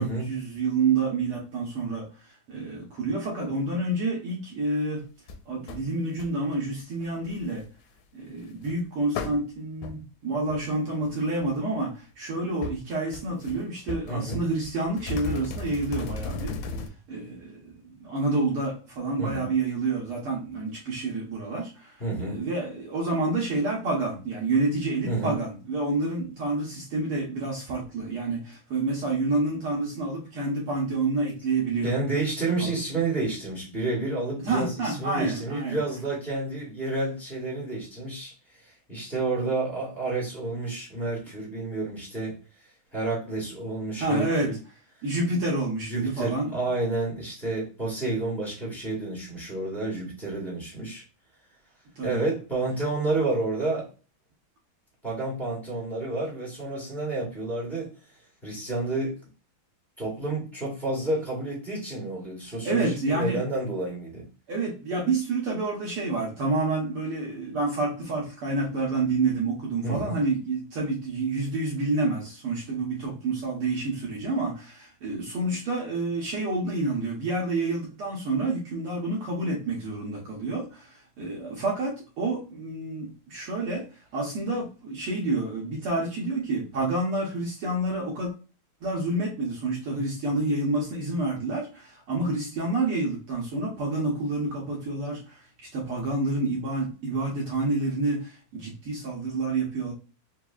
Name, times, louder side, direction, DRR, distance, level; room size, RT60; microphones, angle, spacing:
voice 1, 0.0-2.1 2.5-5.0 5.5-7.6 8.1-16.6 17.1-31.9 32.6-32.8 34.4-35.8 44.0-44.5 45.0-46.5 52.0-52.2 62.6-63.4 64.5-83.8 84.1-88.3 88.8-95.4 95.7-99.9, right 2 dB, 70° right, -3 dB, 1.3 m, -28 dB
sound 1, 5.3-5.4 5.7-5.8 6.2-6.5 7.0-7.6 8.6-8.7 9.1-9.4 9.8-10.0 10.5-10.7 11.0-11.1 11.4-11.7 12.6-12.8 13.1-13.6 13.9-16.9, left 4 dB, 80° left, 1.7 m, -35 dB
voice 2, 14.1-14.4 19.2-19.4 22.0-22.4 25.1-25.3 31.8-38.3 38.9-42.3 42.9-44.5 45.9-51.0 52.0-53.9 55.0-57.9 58.4-59.2 60.0-64.3 69.8-70.1, right 2 dB, ahead, -5 dB, 0.8 m, -30 dB
4.8 x 2.6 x 2.3 m, 0.35 s
omnidirectional pair, 3.4 m